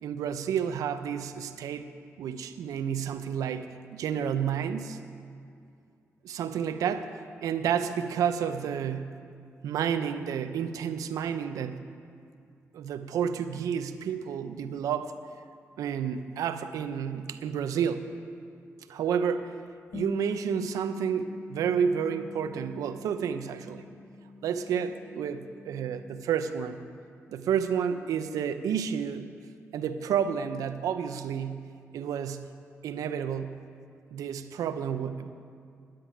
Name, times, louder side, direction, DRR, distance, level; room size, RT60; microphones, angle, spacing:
voice 1, 0.0-1.9 2.2-5.0 6.2-7.1 7.4-9.0 9.6-11.8 12.7-15.1 15.8-18.0 18.9-19.5 19.9-23.9 24.4-26.8 27.3-29.3 29.7-31.6 31.9-32.4 32.8-33.5 34.1-35.3, right 8 dB, 90° right, 10 dB, 0.7 m, -30 dB
Bass guitar, 19.9-26.2, left 3 dB, 55° left, 0.6 m, -44 dB
10.0 x 10.0 x 9.0 m, 2.4 s
cardioid pair, 55°, 6 cm